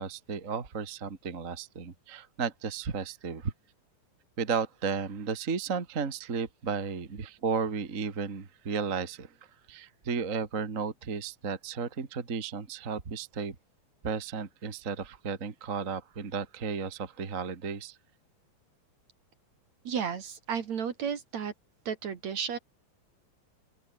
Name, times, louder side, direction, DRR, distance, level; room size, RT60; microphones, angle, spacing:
voice 1, 0.0-3.5 4.4-9.3 9.7-13.6 14.0-18.0, right 5 dB, 25° right, 1.9 m, -34 dB
voice 2, 19.8-21.5 21.9-22.6, right 7 dB, 55° right, 3.0 m, -33 dB
open air
omnidirectional pair, 4.2 m